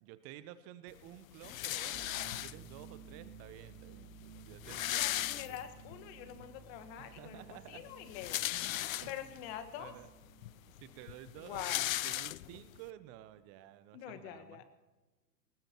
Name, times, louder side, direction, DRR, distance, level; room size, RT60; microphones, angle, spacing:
voice 1, 0.0-5.7 7.0-7.8 9.0-9.2 9.8-10.1 10.8-14.6, right 13 dB, 30° right, 13 dB, 0.9 m, -52 dB
sound 1, 1.4-2.9 3.7-3.8 4.0-4.1 4.4-6.0 6.4-6.5 7.9-9.4 10.1-10.2 10.4-12.8, left 15 dB, 55° left, 0.5 m, -37 dB
sound 2, 1.9-13.4, right 6 dB, 45° right, 3.1 m, -56 dB
voice 2, 4.9-8.4 9.1-9.9 11.4-11.9 13.9-14.6, left 10 dB, 40° left, 10 dB, 1.7 m, -45 dB
20.5 x 19.5 x 3.0 m, 1.2 s
figure-of-eight pair, 110°, 50 cm